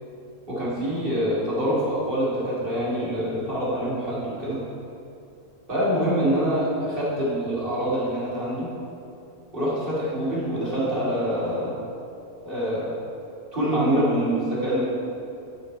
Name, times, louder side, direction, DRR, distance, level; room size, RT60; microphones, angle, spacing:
voice 1, 0.5-4.6 5.7-8.7 9.5-11.7 12.4-12.9 13.5-14.8, equal, 35° right, -9 dB, 2.7 m, -25 dB
9.4 x 9.0 x 3.3 m, 2.7 s
omnidirectional pair, 1.6 m